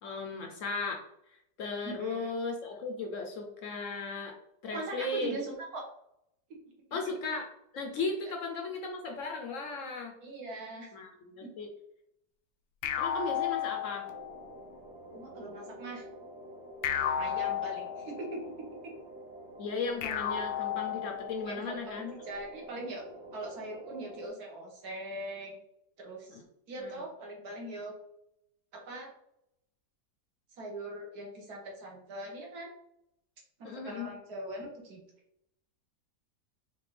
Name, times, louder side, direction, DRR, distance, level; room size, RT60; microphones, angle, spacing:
voice 1, 0.0-1.0 1.6-4.3 4.6-5.4 6.9-7.5 7.7-10.1 10.9-11.7 13.0-14.1 19.6-22.1 26.3-26.4 26.8-27.0 33.6-34.1, left 3 dB, 60° left, 3 dB, 0.9 m, -36 dB
voice 2, 1.8-2.3 4.7-5.9 10.2-10.9 11.4-11.5 15.1-16.0 17.1-18.9 21.4-23.0 23.3-25.6 26.0-26.4 26.7-27.9 28.7-29.1 30.6-32.7 33.6-35.0, right 2 dB, 65° right, -1 dB, 1.7 m, -41 dB
sound 1, 12.8-14.5 16.8-18.4 20.0-21.5, left 9 dB, 85° left, 1.2 m, -33 dB
sound 2, 14.0-24.3, right 1 dB, 80° right, 1.5 m, -48 dB
5.1 x 2.6 x 3.3 m, 0.76 s
omnidirectional pair, 1.8 m